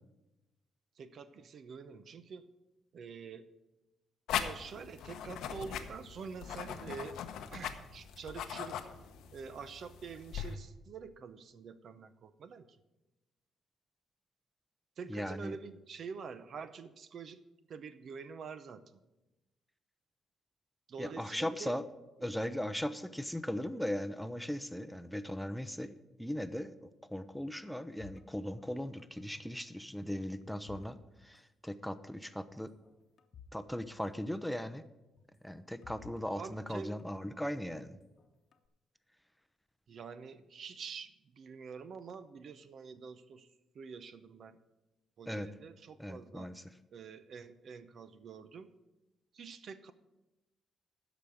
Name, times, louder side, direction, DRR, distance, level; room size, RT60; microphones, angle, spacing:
voice 1, 1.0-2.5 2.9-3.5 4.3-7.2 7.5-8.9 9.3-12.8 15.0-17.4 17.7-19.0 20.9-21.8 22.2-22.3 36.3-37.0 39.9-43.5 43.7-44.6 45.2-46.5 46.9-48.7 49.3-49.9, right 5 dB, 60° right, 12 dB, 0.7 m, -46 dB
sound 1, 4.3-10.6, left 9 dB, 85° left, 0.8 m, -40 dB
voice 2, 15.1-15.6 21.0-21.8 22.2-31.0 31.2-32.7 33.5-34.8 35.4-38.0 45.3-45.5 46.0-46.6, equal, ahead, 11 dB, 0.6 m, -38 dB
sound 2, 28.0-29.6 29.8-31.4 31.7-31.9 32.5-33.6 33.9-34.0 35.2-37.2 37.8-38.7, left 6 dB, 50° left, 1.0 m, -58 dB
12.5 x 5.1 x 7.8 m, 1.0 s
cardioid pair, 90°, 0 cm